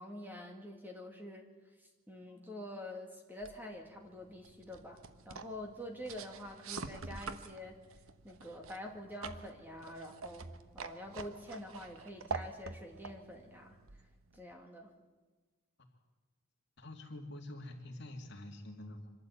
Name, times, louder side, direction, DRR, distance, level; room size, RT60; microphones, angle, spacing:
voice 1, 0.0-1.5 1.8-5.0 5.3-7.8 8.2-10.5 10.7-13.8 14.3-14.9, left 1 dB, 10° right, 2 dB, 2.1 m, -46 dB
sound 1, 3.4-14.5, right 4 dB, 80° right, 1.0 m, -47 dB
voice 2, 16.8-19.1, left 1 dB, 55° left, 3 dB, 2.4 m, -46 dB
25.0 x 12.5 x 8.3 m, 1.3 s
head